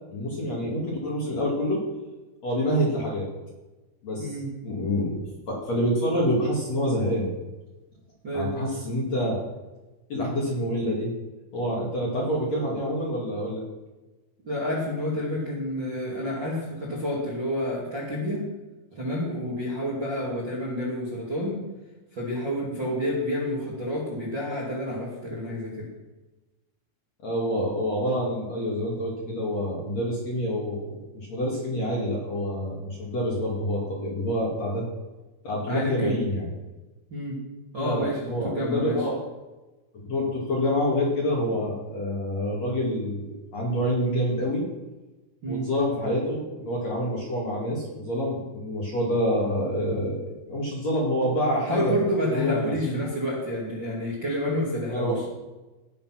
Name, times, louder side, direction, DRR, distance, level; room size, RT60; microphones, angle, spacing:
voice 1, 0.1-1.8 2.4-3.3 4.0-4.4 4.6-5.2 5.5-7.3 8.3-9.4 10.1-11.1 11.5-13.6 27.2-30.8 31.1-34.8 35.4-36.4 37.8-39.2 40.0-44.6 45.5-52.0 52.3-53.1 54.9-55.3, equal, 45° left, -4 dB, 2.7 m, -27 dB
voice 2, 14.4-18.4 18.9-21.6 22.1-25.9 35.7-36.2 37.1-37.4 37.7-39.0 45.4-45.7 51.7-55.2, equal, 30° right, -5 dB, 2.2 m, -29 dB
17.5 x 7.1 x 6.0 m, 1.1 s
omnidirectional pair, 5.8 m